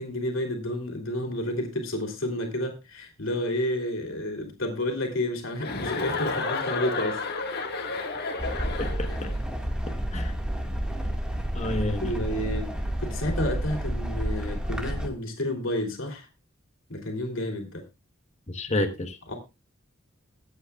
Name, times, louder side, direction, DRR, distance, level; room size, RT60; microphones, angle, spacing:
voice 1, 0.0-7.2 10.1-10.3 11.9-16.3 16.9-17.8 18.8-18.9 19.3-19.4, left 1 dB, 70° left, 3.0 m, -31 dB
Chuckle chortle, 5.6-9.3, left 3 dB, 50° left, 1.8 m, -31 dB
sound 1, 8.4-15.1, equal, 5° right, 1.8 m, -30 dB
voice 2, 8.8-9.3 10.1-10.3 11.5-12.1 18.5-19.2, left 1 dB, 35° left, 1.2 m, -29 dB
22.0 x 8.4 x 2.4 m
head